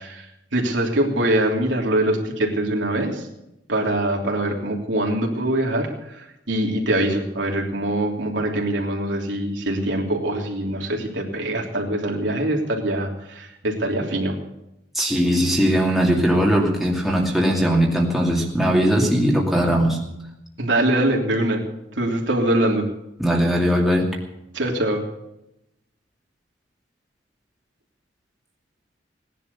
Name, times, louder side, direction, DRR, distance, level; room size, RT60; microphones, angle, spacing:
voice 1, 0.0-3.3 3.7-14.4 20.6-21.6 21.9-22.8 24.5-25.0, right 1 dB, 75° right, 0 dB, 3.3 m, -23 dB
voice 2, 14.9-20.0 23.2-24.2, equal, ahead, -2 dB, 2.5 m, -19 dB
18.5 x 11.0 x 7.0 m, 0.87 s
head